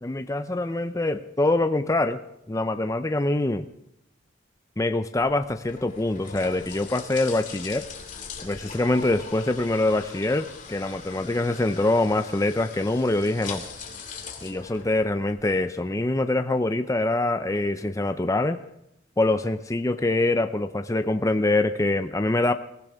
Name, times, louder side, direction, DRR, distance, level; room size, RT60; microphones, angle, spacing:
voice 1, 0.0-2.2 2.5-3.7 4.8-7.9 8.4-13.6 14.4-18.6 19.2-22.5, left 2 dB, 15° left, 9 dB, 0.5 m, -24 dB
sound 1, 5.2-15.5, left 5 dB, 40° left, 2.3 m, -41 dB
24.5 x 15.5 x 3.5 m, 0.81 s
head